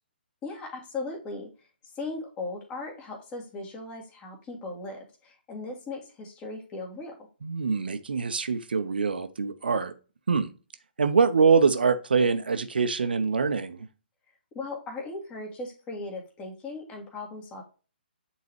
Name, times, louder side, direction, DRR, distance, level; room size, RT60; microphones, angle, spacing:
voice 1, 0.4-1.5 2.0-7.1 14.6-17.6, left 3 dB, 20° left, 1.9 m, -37 dB
voice 2, 7.4-9.9 10.3-10.5 11.0-13.9, right 5 dB, 60° right, 0.8 m, -24 dB
8.2 x 4.0 x 3.1 m
figure-of-eight pair, 130°, 6 cm